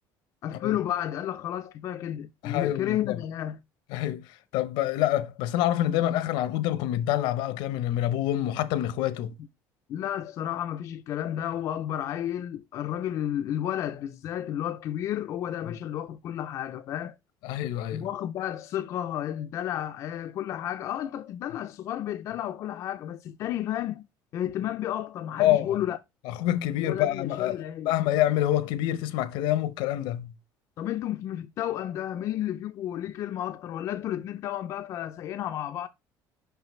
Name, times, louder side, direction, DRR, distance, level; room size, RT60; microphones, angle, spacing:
voice 1, 0.4-3.6 9.9-17.2 17.9-24.0 24.3-26.0 26.8-27.9 30.8-35.9, left 11 dB, 40° left, 0.4 m, -32 dB
voice 2, 2.4-3.2 3.9-9.3 15.7-15.8 17.4-18.1 25.4-25.8 26.3-27.6 27.8-30.3, left 13 dB, 80° left, 0.7 m, -26 dB
5.6 x 5.6 x 3.0 m
cardioid pair, 170°, 8 cm